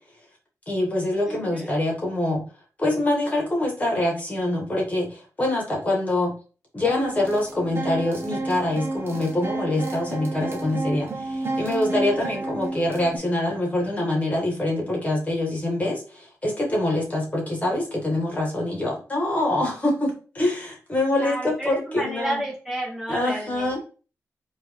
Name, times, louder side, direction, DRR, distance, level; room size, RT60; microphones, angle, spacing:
voice 1, 0.7-2.4 2.8-6.3 6.7-22.4 23.1-23.8, left 1 dB, 25° left, -1 dB, 1.7 m, -25 dB
voice 2, 1.2-1.7 12.1-12.5 21.1-23.8, right 1 dB, 5° right, -4 dB, 1.2 m, -31 dB
sound 1, 6.8-13.2, right 2 dB, 45° right, 0.8 m, -31 dB
4.5 x 2.7 x 3.6 m, 0.37 s
wide cardioid pair, 105°, 6 cm